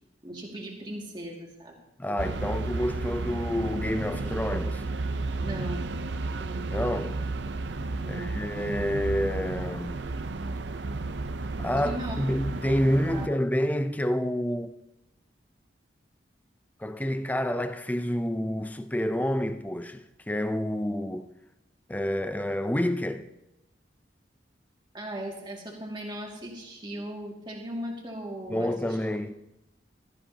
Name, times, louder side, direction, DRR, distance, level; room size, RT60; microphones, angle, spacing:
voice 1, 0.2-1.8 2.1-2.2 5.4-5.8 6.2-6.7 8.0-8.3 11.9-12.2 13.1-13.3 24.9-29.0, right 1 dB, 25° right, 2.2 m, -38 dB
voice 2, 2.0-4.8 6.7-7.2 8.1-10.0 11.6-14.7 16.8-21.3 21.9-23.3 28.5-29.3, equal, 10° left, 0.4 m, -28 dB
sound 1, 2.2-13.3, right 3 dB, 80° right, 0.6 m, -32 dB
15.5 x 13.0 x 2.8 m
head